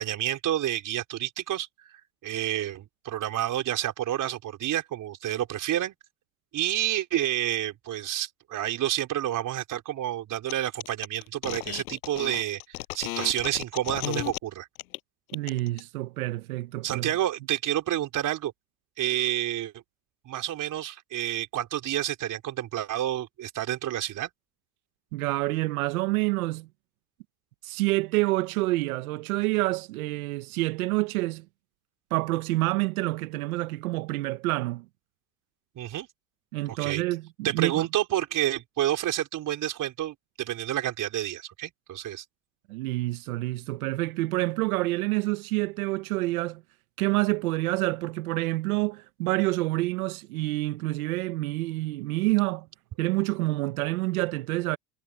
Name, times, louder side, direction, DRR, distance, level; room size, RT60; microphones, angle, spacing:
voice 1, 0.0-1.7 2.2-5.9 6.5-14.7 16.8-18.5 19.0-19.7 20.2-24.3 35.7-36.1 36.7-37.0 37.4-42.2, right 12 dB, 50° right, 4.7 m, -29 dB
sound 1, 10.5-10.6 10.8-14.4 14.7-15.0 15.3-15.8, left 18 dB, 90° left, 6.4 m, -34 dB
voice 2, 15.3-17.1 25.1-26.7 27.6-31.5 32.1-34.8 36.5-37.9 42.7-46.6 47.0-52.7 53.0-54.8, right 20 dB, 90° right, 1.3 m, -28 dB
supercardioid pair, 105°, 42 cm